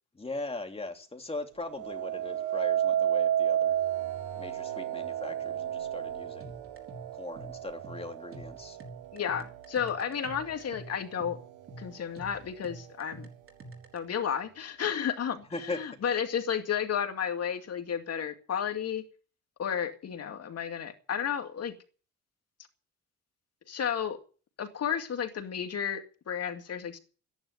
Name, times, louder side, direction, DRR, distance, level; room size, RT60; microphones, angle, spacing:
voice 1, 0.2-3.7 4.4-6.4 7.2-8.8 15.5-15.8, left 2 dB, 20° left, 4 dB, 2.9 m, -39 dB
sound 1, 1.7-10.8 11.4-11.8, right 10 dB, 90° right, 1.6 m, -32 dB
sound 2, 6.4-14.0, right 2 dB, 45° right, 4.5 m, -47 dB
voice 2, 9.1-11.4 11.8-13.3 13.9-19.0 19.6-21.7 23.7-24.2 24.6-27.0, left 8 dB, 55° left, 6 dB, 2.3 m, -32 dB
14.0 x 10.5 x 8.0 m, 0.38 s
cardioid pair, 90°, 30 cm